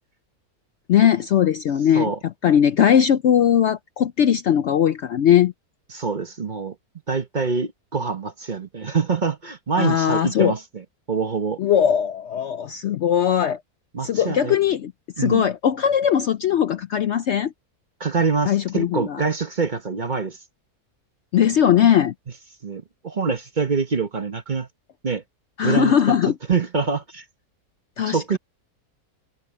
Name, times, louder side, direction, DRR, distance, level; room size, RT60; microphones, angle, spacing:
voice 1, 0.9-2.1 2.4-5.5 9.8-10.5 11.6-13.6 14.0-14.9 15.2-17.5 18.5-19.2 21.3-22.1 25.6-26.4 28.0-28.4, left 9 dB, 65° left, 0.7 m, -19 dB
voice 2, 5.9-6.7 7.1-11.6 13.9-14.6 15.2-15.5 18.0-20.4 22.6-24.7 25.0-25.2 25.6-26.2 26.5-27.2 28.1-28.4, right 5 dB, 35° right, 1.0 m, -25 dB
omnidirectional pair, 1.6 m